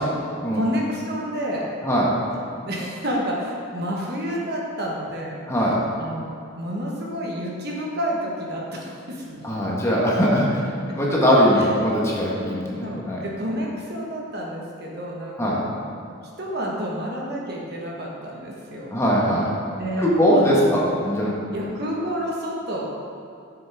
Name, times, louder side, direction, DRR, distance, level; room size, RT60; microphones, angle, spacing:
voice 1, 0.0-1.8 2.6-6.3 6.6-9.7 11.6-11.9 12.8-15.8 16.4-18.9 19.8-20.1 20.3-20.9 21.5-22.8, equal, 50° right, -3 dB, 1.3 m, -30 dB
voice 2, 5.5-5.8 9.4-10.6 10.9-13.2 15.4-15.6 18.9-19.5 20.0-21.4, equal, 15° left, -5 dB, 1.4 m, -20 dB
10.5 x 7.2 x 3.5 m, 2.6 s
head